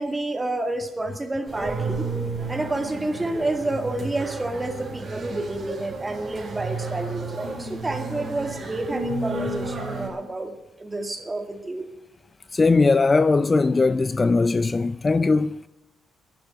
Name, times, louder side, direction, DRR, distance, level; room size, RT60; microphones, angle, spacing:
voice 1, 0.0-2.1 2.5-11.9, right 2 dB, 20° right, 2.1 m, -29 dB
sound 1, 1.5-10.1, right 3 dB, 40° right, 4.4 m, -32 dB
voice 2, 12.5-15.7, left 3 dB, 25° left, 0.4 m, -20 dB
11.0 x 11.0 x 9.3 m
cardioid pair, 90°, 0 cm